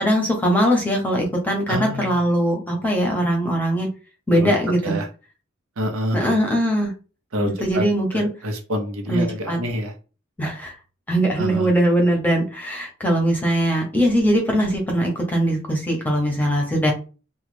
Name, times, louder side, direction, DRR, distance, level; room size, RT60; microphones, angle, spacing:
voice 1, 0.0-3.9 4.3-5.0 6.1-6.9 7.6-8.3 9.1-9.6 10.4-10.7 11.1-16.9, equal, 10° left, 1 dB, 0.7 m, -21 dB
voice 2, 1.7-2.2 4.4-4.5 4.8-5.1 5.8-6.4 7.3-7.8 8.1-9.9 11.4-11.7, equal, 90° right, 4 dB, 0.8 m, -26 dB
3.1 x 2.3 x 3.1 m, 0.33 s
head